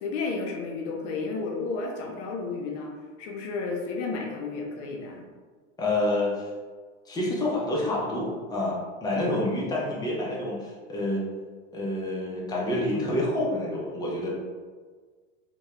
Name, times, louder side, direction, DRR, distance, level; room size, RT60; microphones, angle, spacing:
voice 1, 0.0-2.9 3.2-5.3, left 4 dB, 65° left, 1 dB, 0.5 m, -32 dB
voice 2, 5.8-6.5 7.1-11.2 11.7-14.3, left 1 dB, 10° left, -5 dB, 0.4 m, -28 dB
2.2 x 2.0 x 2.8 m, 1.5 s
supercardioid pair, 120°, 38 cm